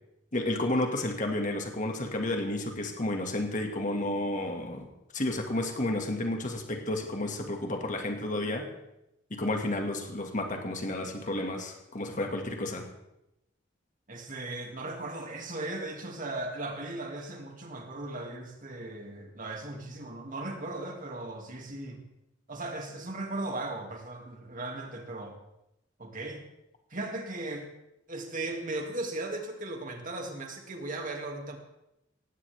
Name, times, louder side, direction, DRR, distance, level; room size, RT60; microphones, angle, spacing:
voice 1, 0.3-4.9 5.1-8.7 9.3-12.9, left 1 dB, 40° left, 3 dB, 2.1 m, -31 dB
voice 2, 14.1-22.0 22.5-25.4 26.0-26.4 26.9-27.7 28.1-31.6, right 2 dB, 45° right, 2 dB, 2.6 m, -37 dB
18.5 x 16.0 x 3.6 m, 0.87 s
head